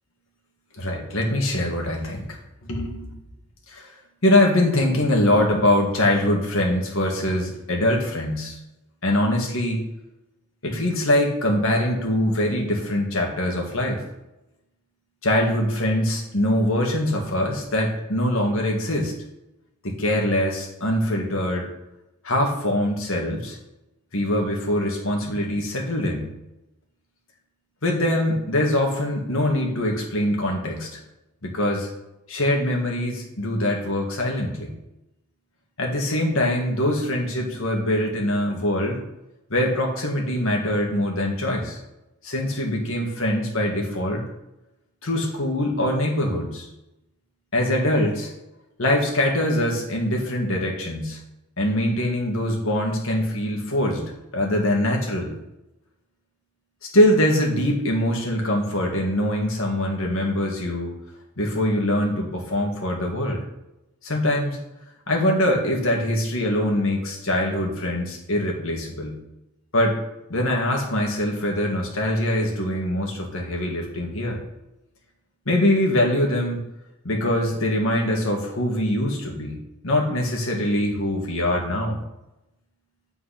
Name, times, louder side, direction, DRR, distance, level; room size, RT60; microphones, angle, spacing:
voice 1, 0.8-2.2 2.6-3.1 3.7-3.9 4.2-8.6 9.0-9.8 10.6-14.0 15.2-19.1 19.8-21.7 22.2-23.6 24.1-26.3 27.8-31.0 31.4-31.9 32.3-34.7 35.8-39.0 39.5-41.8 42.2-44.2 45.0-46.7 47.5-48.3 48.8-51.2 51.6-55.3 56.9-61.0 61.4-63.4 64.0-64.6 65.1-69.2 69.7-70.0 70.3-74.4 75.5-76.6 77.0-79.6 79.8-82.0, left 1 dB, 65° left, 1 dB, 1.9 m, -23 dB
8.5 x 4.6 x 5.8 m, 0.93 s
head